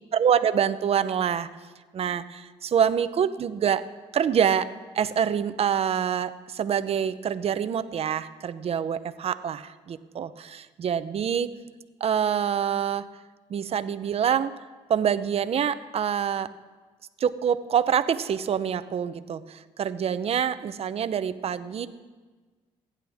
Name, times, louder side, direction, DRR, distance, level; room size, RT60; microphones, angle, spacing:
voice 1, 0.1-1.5 1.9-3.8 4.1-4.7 4.9-11.5 12.0-13.1 13.5-14.5 14.9-16.5 17.2-21.9, right 8 dB, 55° right, 13 dB, 0.8 m, -26 dB
28.0 x 11.0 x 3.6 m, 1.4 s
cardioid pair, 80°, 13 cm